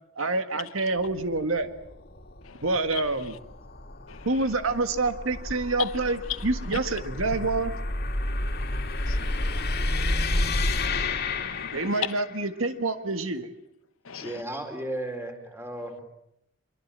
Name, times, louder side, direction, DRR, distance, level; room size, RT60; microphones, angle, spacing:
voice 1, 0.1-1.7 2.6-3.4 4.2-7.7 11.7-13.5 14.1-14.2, right 3 dB, 80° right, 1.8 m, -27 dB
sound 1, 1.0-12.4, left 2 dB, 50° left, 2.5 m, -31 dB
voice 2, 9.1-9.6 10.8-11.9 14.1-14.4, left 7 dB, 85° left, 1.1 m, -39 dB
voice 3, 14.2-16.0, right 1 dB, 10° right, 4.0 m, -34 dB
24.5 x 23.0 x 7.5 m
head